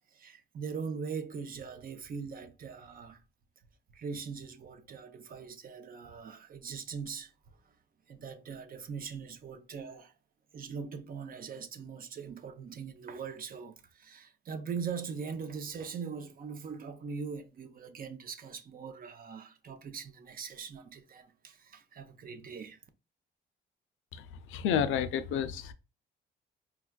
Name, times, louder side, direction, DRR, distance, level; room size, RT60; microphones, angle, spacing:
voice 1, 0.0-3.2 3.9-7.3 8.1-10.1 10.5-22.8, right 6 dB, 45° right, 0.6 m, -41 dB
voice 2, 24.1-25.7, left 8 dB, 85° left, 0.4 m, -31 dB
4.5 x 2.3 x 2.2 m
cardioid pair, 90°, 20 cm